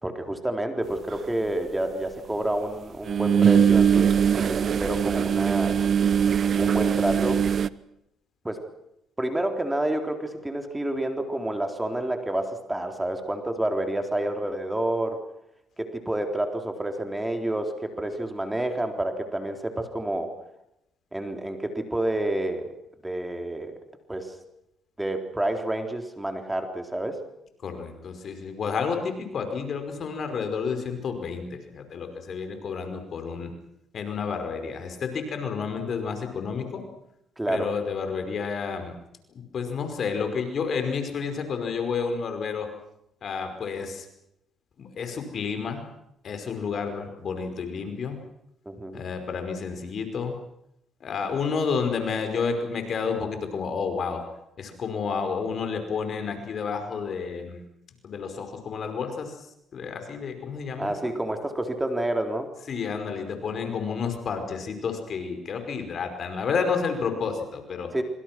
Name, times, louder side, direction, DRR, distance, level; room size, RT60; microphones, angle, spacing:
voice 1, 0.0-5.8 6.6-7.4 8.4-8.6 9.2-15.2 15.8-20.3 21.1-22.7 23.0-23.8 24.1-24.4 25.0-27.2 37.4-37.7 48.7-49.0 60.8-62.5 67.9-68.0, right 1 dB, 10° right, 5 dB, 3.9 m, -29 dB
sound 1, 1.1-1.2 3.1-7.7, right 8 dB, 55° right, 0.8 m, -21 dB
voice 2, 27.6-33.5 33.9-36.8 37.5-38.9 39.5-42.7 43.2-44.1 44.8-45.8 46.2-48.2 48.9-50.4 51.0-54.2 54.6-57.6 58.0-59.5 59.7-61.1 62.7-67.9, left 5 dB, 55° left, 6 dB, 5.3 m, -30 dB
25.5 x 25.0 x 6.1 m, 0.81 s
cardioid pair, 80°, 0 cm